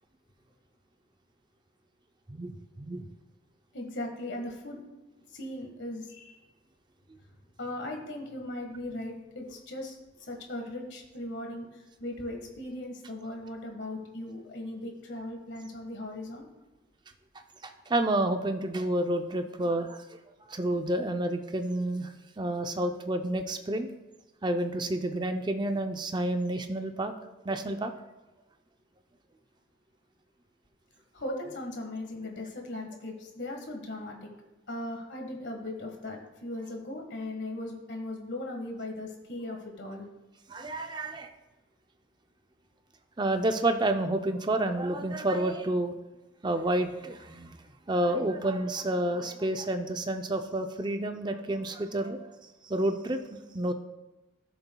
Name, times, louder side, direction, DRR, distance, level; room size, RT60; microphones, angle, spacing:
voice 1, 2.3-3.1 17.6-20.0 20.5-22.1 22.4-23.9 24.4-27.1 27.4-27.9 40.5-41.3 43.2-45.9 46.4-47.6 47.9-52.3 52.6-53.7, right 1 dB, 25° right, 7 dB, 0.5 m, -29 dB
voice 2, 3.7-4.8 5.3-6.4 7.6-16.5 31.1-34.3 34.7-40.1, left 1 dB, 70° left, 2 dB, 1.5 m, -38 dB
13.0 x 6.9 x 2.3 m, 1.1 s
head